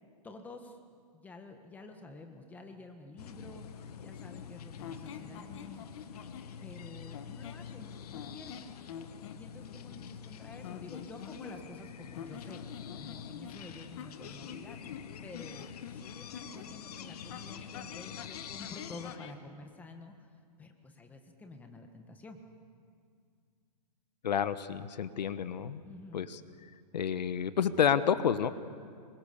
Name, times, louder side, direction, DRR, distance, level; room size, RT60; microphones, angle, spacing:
voice 1, 0.2-0.8 1.1-5.8 6.6-8.7 9.3-12.6 13.0-20.1 20.6-22.4 25.8-26.3, left 2 dB, 5° left, 5 dB, 1.5 m, -50 dB
sound 1, 3.2-19.2, left 8 dB, 65° left, 1.4 m, -46 dB
sound 2, 4.8-6.5 7.1-7.7 8.1-9.4 10.6-11.8 12.1-16.7 17.3-19.4, left 8 dB, 45° left, 1.6 m, -47 dB
voice 2, 24.2-25.8 26.1-26.4 26.9-28.5, left 8 dB, 85° left, 13 dB, 1.2 m, -29 dB
26.5 x 23.0 x 6.9 m, 2.2 s
hypercardioid pair, 160°, 21 cm